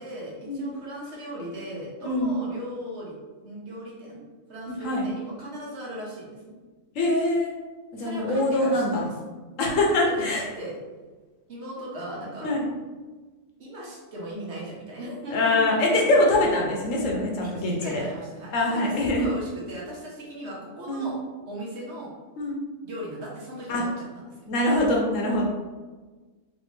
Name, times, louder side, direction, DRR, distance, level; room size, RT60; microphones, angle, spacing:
voice 1, 0.0-3.1 3.4-4.2 4.5-6.6 7.9-9.1 9.6-10.8 11.5-12.5 13.6-15.8 17.4-21.2 21.4-22.1 22.8-24.5, right 1 dB, 60° right, -5 dB, 1.1 m, -38 dB
voice 2, 2.0-2.4 4.7-5.0 6.9-7.5 7.9-9.0 9.6-10.4 12.4-12.6 15.3-18.0 18.5-19.3 20.9-21.1 22.4-22.6 23.7-23.8 24.5-25.5, left 1 dB, 70° left, -1 dB, 1.1 m, -23 dB
3.3 x 2.7 x 3.1 m, 1.3 s
omnidirectional pair, 1.4 m